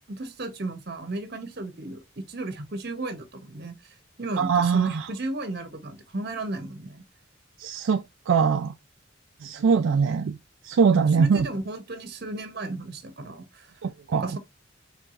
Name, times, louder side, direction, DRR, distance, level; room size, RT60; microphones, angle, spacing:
voice 1, 0.1-7.0 10.9-13.7 14.1-14.4, right 2 dB, 50° right, 0.8 m, -34 dB
voice 2, 4.4-5.1 7.6-8.7 9.4-10.4 10.6-11.5 13.8-14.3, right 5 dB, 80° right, 0.4 m, -22 dB
4.6 x 3.4 x 2.4 m
head